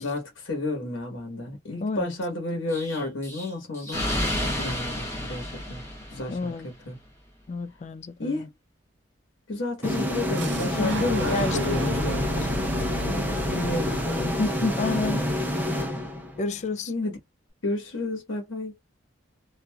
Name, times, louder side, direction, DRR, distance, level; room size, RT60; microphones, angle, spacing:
voice 1, 0.0-5.8 6.1-7.0 8.2-8.5 9.5-12.4 12.9-14.8 16.9-17.2 17.6-18.7, left 2 dB, 85° left, 1.1 m, -31 dB
Explosion, 2.7-6.6, left 1 dB, 15° left, 1.0 m, -31 dB
voice 2, 6.3-6.7 7.5-8.5 9.8-10.2 10.6-11.0 11.3-12.1 12.4-12.6 14.8-15.3 16.4-16.9, left 3 dB, 35° left, 0.3 m, -30 dB
sound 1, 9.8-16.6, equal, 10° right, 0.6 m, -28 dB
Fire / Explosion, 10.4-16.2, right 1 dB, 65° right, 0.5 m, -35 dB
2.8 x 2.5 x 2.2 m
head